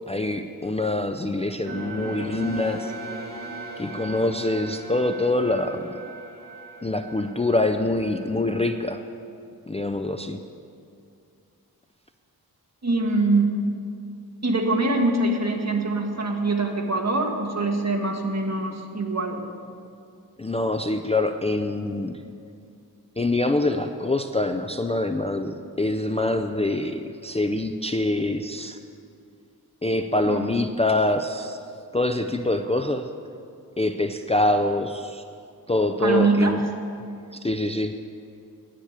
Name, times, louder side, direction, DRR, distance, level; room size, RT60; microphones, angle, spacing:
voice 1, 0.1-2.9 3.8-5.9 6.8-9.0 9.7-10.4 20.4-22.2 23.2-28.8 29.8-31.6 31.9-33.1 33.8-35.2 35.7-36.6 37.3-37.9, left 2 dB, 15° left, 7 dB, 0.4 m, -25 dB
sound 1, 1.6-8.9, right 2 dB, 60° right, 3.6 m, -38 dB
voice 2, 12.8-13.6 14.4-19.4 30.2-30.5 36.0-36.6, right 2 dB, 45° right, 2 dB, 1.6 m, -23 dB
10.0 x 9.8 x 8.2 m, 2.4 s
wide cardioid pair, 105°, 38 cm